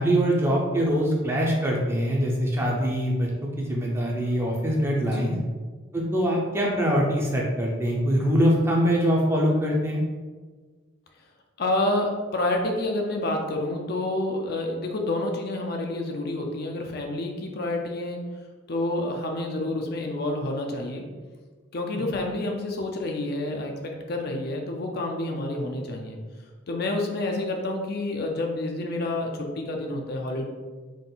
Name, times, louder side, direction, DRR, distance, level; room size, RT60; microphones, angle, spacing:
voice 1, 0.0-5.4 5.9-10.0 21.9-22.0, equal, 10° right, -2 dB, 0.5 m, -23 dB
voice 2, 11.6-18.2 18.7-21.0 21.7-26.2 26.7-30.5, left 2 dB, 50° left, 2 dB, 0.4 m, -28 dB
3.7 x 2.5 x 3.9 m, 1.4 s
head